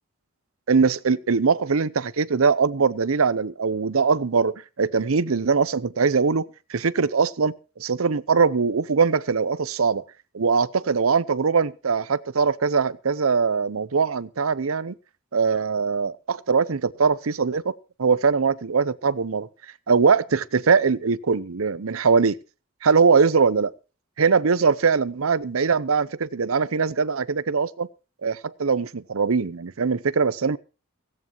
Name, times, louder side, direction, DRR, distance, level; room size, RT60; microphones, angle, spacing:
voice 1, 0.7-10.0 10.3-14.9 15.3-17.7 18.0-19.5 19.9-22.4 22.8-23.7 24.2-27.9 28.2-30.6, right 5 dB, 85° right, 0.7 m, -21 dB
16.5 x 16.5 x 3.0 m
head